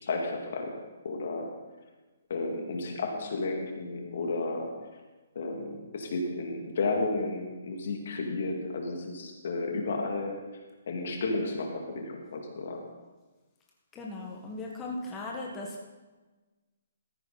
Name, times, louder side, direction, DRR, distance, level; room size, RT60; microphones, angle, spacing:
voice 1, 0.0-0.7 1.0-1.5 2.3-4.7 5.3-10.4 10.9-12.8, left 3 dB, 60° left, 2 dB, 2.5 m, -32 dB
voice 2, 13.9-15.9, left 2 dB, 20° left, -2 dB, 1.6 m, -38 dB
14.0 x 9.8 x 4.2 m, 1.2 s
hypercardioid pair, 140°, 0 cm